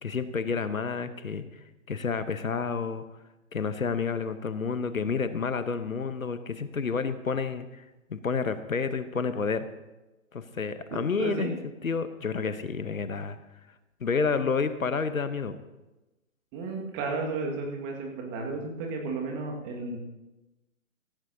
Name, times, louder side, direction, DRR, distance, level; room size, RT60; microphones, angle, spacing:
voice 1, 0.0-1.5 1.9-3.0 3.5-7.8 8.1-9.7 10.3-11.5 11.8-13.4 14.0-15.6, left 5 dB, 75° left, 11 dB, 1.0 m, -30 dB
voice 2, 10.9-11.5 16.5-20.0, right 3 dB, 20° right, 1 dB, 1.8 m, -33 dB
15.5 x 15.0 x 2.8 m, 1.1 s
figure-of-eight pair, 135°, 41 cm